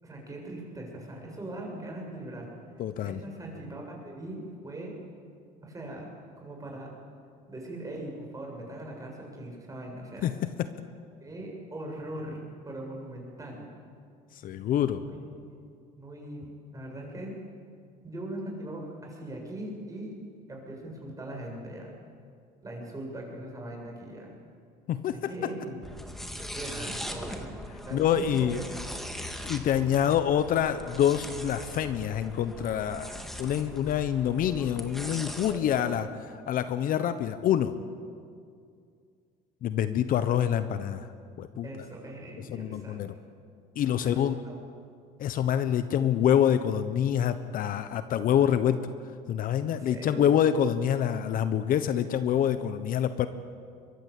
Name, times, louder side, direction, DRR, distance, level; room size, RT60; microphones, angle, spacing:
voice 1, 0.0-2.5 3.0-5.0 5.6-6.9 7.5-10.3 11.2-12.4 12.6-13.7 14.9-15.6 16.0-17.4 18.0-20.2 20.5-21.9 22.6-24.3 25.3-25.8 26.5-28.6 35.5-35.9 40.2-40.4 41.6-43.0 44.0-44.5 49.6-50.4, right 1 dB, 20° right, 0 dB, 7.5 m, -40 dB
voice 2, 2.8-3.2 10.2-10.3 10.6-10.7 14.4-15.0 24.9-25.2 27.9-28.6 29.4-33.1 33.4-36.1 36.5-37.7 39.6-41.1 41.4-41.7 42.5-43.1 43.8-44.3 45.2-48.9 49.3-53.3, left 9 dB, 55° left, 11 dB, 1.1 m, -26 dB
sound 1, 25.8-35.6, equal, ahead, 2.3 m, -40 dB
23.5 x 21.0 x 8.4 m, 2.3 s
cardioid pair, 115°, 17 cm